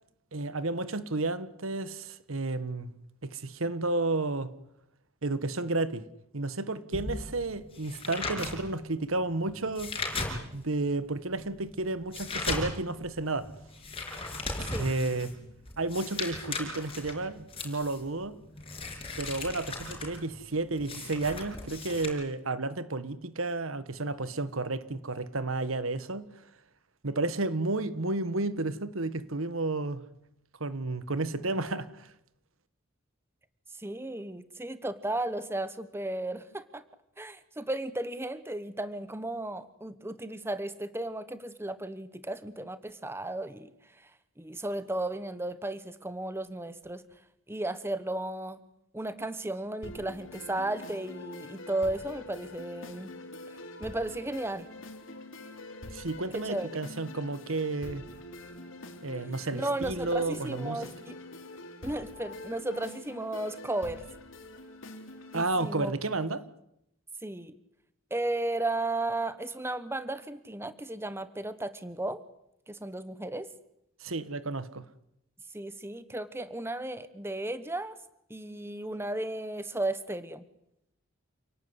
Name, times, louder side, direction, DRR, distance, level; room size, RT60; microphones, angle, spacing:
voice 1, 0.3-2.9 3.2-4.5 5.2-6.0 6.3-9.9 10.5-13.5 14.8-15.3 15.8-18.3 19.2-26.2 27.0-30.0 30.6-32.1 55.9-58.0 59.0-60.8 65.3-66.4 74.0-74.8, right 2 dB, 80° right, 1.5 m, -32 dB
sound 1, 6.9-10.8 11.2-22.1, left 3 dB, 30° left, 7.4 m, -37 dB
voice 2, 33.8-36.8 37.2-43.7 44.4-47.0 47.5-48.6 48.9-53.1 53.8-54.7 56.3-56.7 59.5-61.1 61.8-64.0 65.3-66.0 67.2-67.5 68.1-72.2 72.7-73.5 75.5-78.0 78.3-80.4, right 1 dB, 10° right, 1.2 m, -34 dB
sound 2, 49.8-65.8, left 2 dB, 65° left, 3.6 m, -45 dB
29.0 x 18.0 x 9.8 m
head